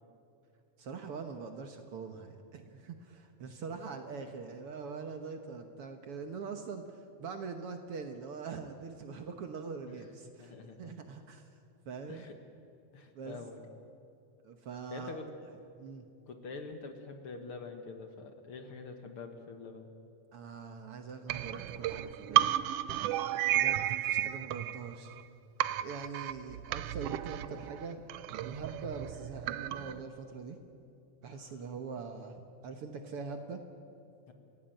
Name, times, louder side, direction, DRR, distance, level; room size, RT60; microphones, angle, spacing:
voice 1, 0.8-11.4 11.9-12.2 13.1-13.4 14.4-15.2 15.8-16.0 20.3-22.5 23.5-25.2 25.7-28.0 28.4-30.6 31.2-33.6, right 5 dB, 60° right, 6 dB, 1.8 m, -43 dB
voice 2, 10.4-11.1 12.1-12.4 12.9-13.6 14.9-15.3 16.3-19.9 31.2-31.6 34.3-34.4, left 4 dB, 55° left, 6 dB, 1.9 m, -46 dB
sound 1, 21.3-25.3 25.6-30.0, right 12 dB, 75° right, 1.4 m, -33 dB
27.0 x 16.5 x 8.9 m, 2.6 s
omnidirectional pair, 3.4 m